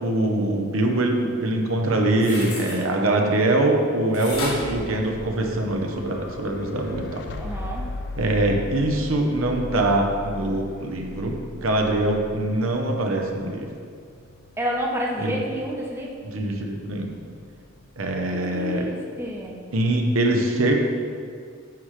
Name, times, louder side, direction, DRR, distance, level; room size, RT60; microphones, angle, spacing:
voice 1, 0.0-7.2 8.2-13.7 15.2-15.3 16.2-17.1 18.0-18.9 19.7-20.8, right 1 dB, 75° right, 2 dB, 0.9 m, -23 dB
sound 1, 2.1-2.8 4.1-5.7 6.2-6.3, left 2 dB, 90° left, 2.1 m, -33 dB
sound 2, 4.3-20.2, left 2 dB, 55° left, 0.5 m, -39 dB
voice 2, 7.4-7.9 14.6-16.2 18.3-19.6, equal, 10° right, -2 dB, 0.8 m, -29 dB
9.4 x 3.3 x 6.5 m, 2.1 s
head